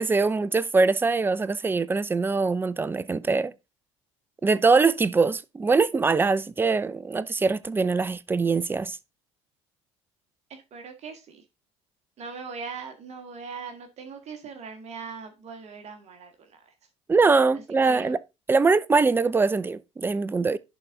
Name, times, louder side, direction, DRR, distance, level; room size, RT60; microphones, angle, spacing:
voice 1, 0.0-3.5 4.4-9.0 17.1-18.2 18.5-20.6, right 4 dB, 15° right, 0.5 m, -23 dB
voice 2, 10.5-11.4 12.2-16.7 17.8-18.1, right 5 dB, 45° right, 1.6 m, -40 dB
11.0 x 4.0 x 3.7 m
hypercardioid pair, 70°, 16 cm